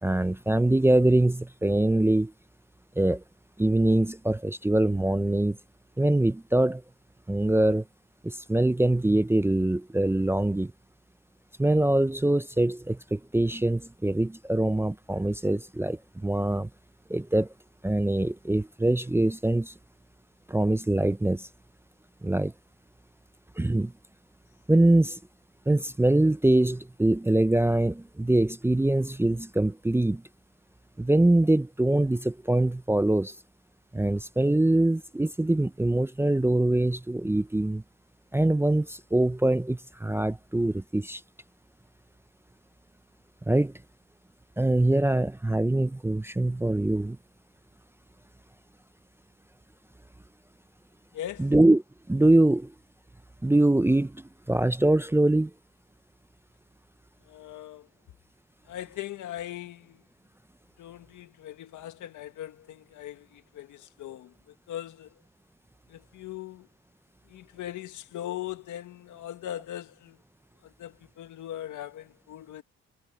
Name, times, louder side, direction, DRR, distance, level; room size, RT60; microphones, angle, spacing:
voice 1, 0.0-2.3 3.0-3.2 3.6-5.6 6.0-6.8 7.3-7.8 8.2-10.7 11.6-16.7 17.1-17.5 17.8-19.7 20.5-21.5 22.2-22.5 23.6-23.9 24.7-25.2 25.7-30.2 31.0-33.3 33.9-37.8 38.3-41.2 43.5-43.7 44.6-47.2 51.4-51.8 52.1-52.7 53.4-55.5, right 1 dB, 10° right, 0.6 m, -23 dB
voice 2, 51.1-51.5 57.3-57.9 58.7-60.0 60.8-65.2 65.9-66.7 67.3-70.2 70.6-72.6, left 12 dB, 80° left, 1.9 m, -40 dB
cardioid pair, 90°, 30 cm